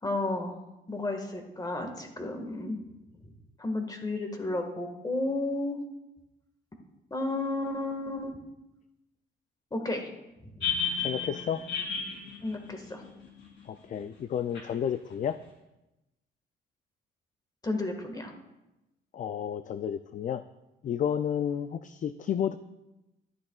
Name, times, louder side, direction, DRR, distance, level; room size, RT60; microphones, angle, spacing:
voice 1, 0.0-0.6 0.9-2.8 3.2-3.3 3.6-5.8 7.1-8.4 9.7-10.1 10.4-10.7 12.4-13.0 17.6-18.3, left 2 dB, 20° left, 4 dB, 1.7 m, -32 dB
sound 1, 10.6-13.6 14.5-14.6, left 6 dB, 65° left, 3.3 m, -33 dB
voice 2, 11.0-11.7 13.7-15.4 19.1-20.4 20.8-22.5, left 9 dB, 40° left, 11 dB, 0.4 m, -31 dB
12.0 x 10.5 x 2.4 m, 0.97 s
cardioid pair, 90°, 20 cm